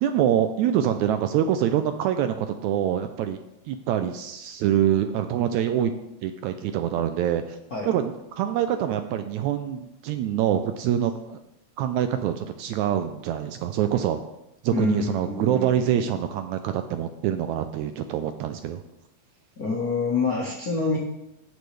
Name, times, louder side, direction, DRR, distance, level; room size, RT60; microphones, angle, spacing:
voice 1, 0.0-3.4 3.7-5.9 6.2-7.6 7.9-11.4 11.8-14.2 14.6-18.8, right 10 dB, 80° right, 8 dB, 1.7 m, -25 dB
voice 2, 14.7-15.9 19.6-21.0, left 4 dB, 55° left, -4 dB, 1.0 m, -27 dB
17.5 x 6.3 x 3.3 m, 0.88 s
omnidirectional pair, 3.7 m